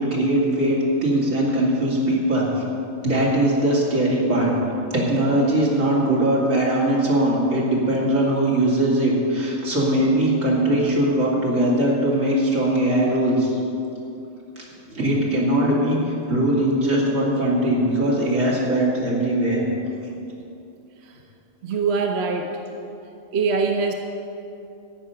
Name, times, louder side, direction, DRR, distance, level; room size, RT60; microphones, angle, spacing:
voice 1, 0.0-2.6 3.0-4.5 4.9-13.6 14.6-14.7 14.9-19.6, right 1 dB, 85° right, -5 dB, 2.9 m, -20 dB
voice 2, 14.9-15.2 21.0-21.2 21.6-22.6 23.3-23.9, right 4 dB, 55° right, 3 dB, 1.0 m, -24 dB
13.5 x 5.6 x 9.3 m, 2.8 s
omnidirectional pair, 1.3 m